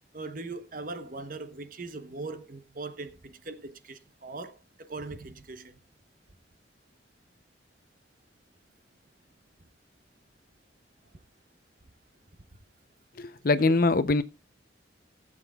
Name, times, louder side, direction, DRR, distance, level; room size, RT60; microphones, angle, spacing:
voice 1, 0.1-5.8 13.6-13.7, right 3 dB, 50° right, 0.9 m, -40 dB
voice 2, 13.2-14.2, left 3 dB, 50° left, 0.6 m, -23 dB
18.0 x 7.5 x 2.3 m
head